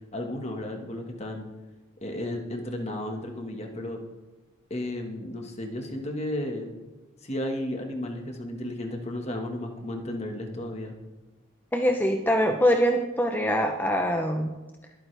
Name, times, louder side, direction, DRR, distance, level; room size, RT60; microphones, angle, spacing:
voice 1, 0.1-1.5 2.0-4.0 4.7-6.7 7.2-11.0, left 1 dB, 30° left, 3 dB, 1.6 m, -33 dB
voice 2, 11.7-14.5, equal, 10° left, 3 dB, 0.7 m, -23 dB
22.0 x 9.0 x 3.4 m, 1.2 s
head